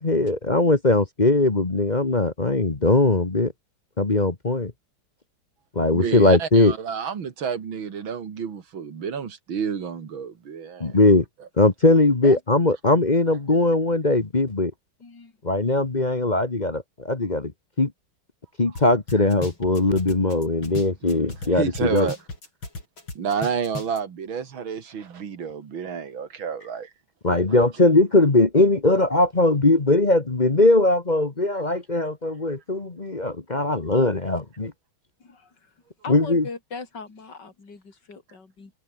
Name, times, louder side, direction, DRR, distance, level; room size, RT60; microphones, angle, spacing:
voice 1, 0.0-3.5 4.0-4.7 5.7-6.7 10.8-11.2 11.6-14.7 15.4-17.5 17.8-17.9 18.6-22.1 27.2-34.7 36.1-36.4, left 2 dB, 25° left, 1.4 m, -20 dB
voice 2, 5.9-11.0 11.4-11.5 21.0-22.2 23.1-26.9, right 7 dB, 75° right, 2.8 m, -30 dB
voice 3, 15.0-15.3 35.2-35.7 36.0-38.7, left 4 dB, 55° left, 4.8 m, -39 dB
sound 1, 18.8-18.9 19.1-21.5 21.8-24.0, left 2 dB, 75° left, 7.6 m, -35 dB
omnidirectional pair, 2.2 m